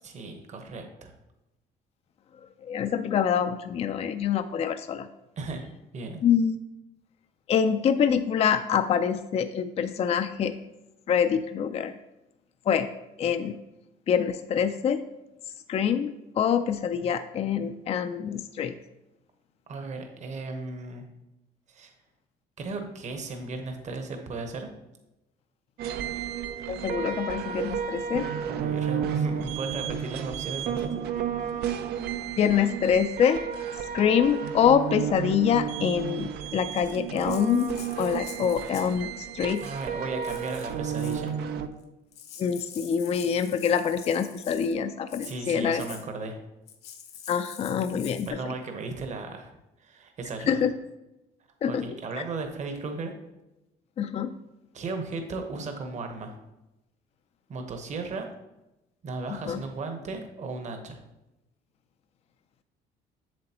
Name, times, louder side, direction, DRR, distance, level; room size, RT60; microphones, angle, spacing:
voice 1, 0.0-1.1 5.4-5.6 5.9-6.2 19.7-21.0 21.7-21.9 22.6-24.7 28.5-31.0 39.6-41.3 45.2-46.4 48.3-49.5 49.8-50.7 51.7-53.1 54.7-56.4 57.5-58.3 59.0-61.0, right 3 dB, 45° right, 5 dB, 1.1 m, -35 dB
voice 2, 2.6-5.1 6.2-6.6 7.5-10.5 11.1-11.9 12.7-12.9 13.2-13.5 14.1-15.0 15.7-18.7 26.7-28.3 32.4-33.4 33.9-39.6 42.4-45.8 47.3-48.3 50.5-50.7 51.6-51.8 54.0-54.3 59.5-59.6, left 8 dB, 40° left, 9 dB, 0.4 m, -25 dB
sound 1, 25.8-41.7, right 8 dB, 75° right, 0.6 m, -32 dB
Rattle (instrument), 36.7-39.0 39.5-39.9 40.2-41.3 41.8-41.9 42.1-44.7 45.1-45.4 45.8-46.0 46.7-48.3, left 8 dB, 75° left, 1.0 m, -46 dB
7.6 x 7.3 x 2.9 m, 0.95 s
cardioid pair, 110°, 17 cm